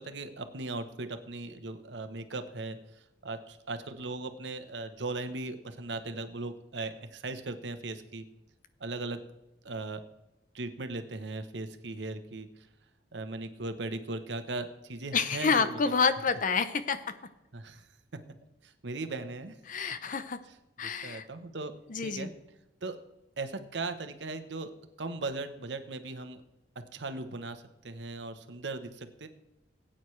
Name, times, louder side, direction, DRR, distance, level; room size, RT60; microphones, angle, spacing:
voice 1, 0.0-2.8 3.2-8.2 8.8-9.2 9.6-10.0 10.5-12.5 13.1-15.8 17.5-17.9 18.6-19.5 21.0-21.7 22.0-22.3 22.8-23.0 23.4-24.7 25.0-26.4 26.9-29.3, right 3 dB, 90° right, 9 dB, 0.9 m, -38 dB
voice 2, 15.1-17.2 19.7-20.4 20.8-21.3 21.9-22.3, left 5 dB, 50° left, 12 dB, 0.7 m, -28 dB
17.0 x 8.8 x 3.2 m, 0.92 s
head